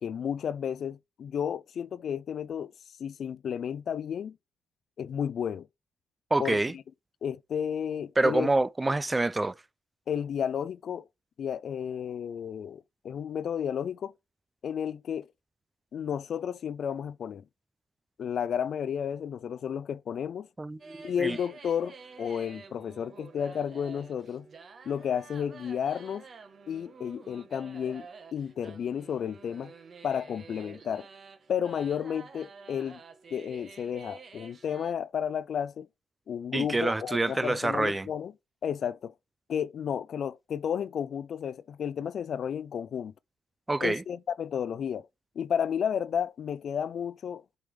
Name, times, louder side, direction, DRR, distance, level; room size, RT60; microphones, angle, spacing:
voice 1, 0.0-2.7 3.0-4.4 5.0-5.7 6.4-6.8 7.2-8.5 10.1-11.1 11.4-14.1 14.6-15.3 15.9-17.4 18.2-20.5 21.0-24.5 24.9-26.2 26.7-29.7 30.0-31.1 31.5-33.0 33.3-35.9 36.3-38.3 38.6-39.1 39.5-43.1 43.8-45.1 45.4-47.6, left 8 dB, 60° left, 0.4 m, -32 dB
voice 2, 6.3-6.7 8.2-9.5 20.6-21.4 36.5-38.1 43.7-44.0, right 2 dB, 15° right, 0.3 m, -27 dB
sound 1, 20.8-34.9, right 4 dB, 45° right, 1.2 m, -49 dB
7.9 x 3.4 x 4.7 m
cardioid pair, 90°, 0 cm